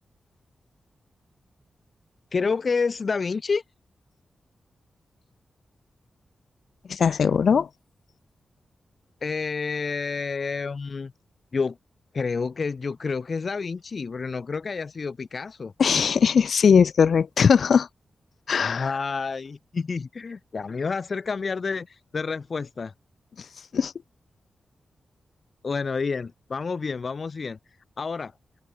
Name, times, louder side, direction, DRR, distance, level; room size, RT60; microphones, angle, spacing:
voice 1, 2.3-3.6 9.2-11.1 11.5-11.8 12.1-15.7 18.6-22.9 25.6-27.6 28.0-28.3, left 4 dB, 50° left, 2.4 m, -29 dB
voice 2, 6.9-7.7 15.8-17.9 18.5-18.9 23.7-23.9, left 6 dB, 70° left, 3.2 m, -19 dB
cardioid pair, 85°, 0 cm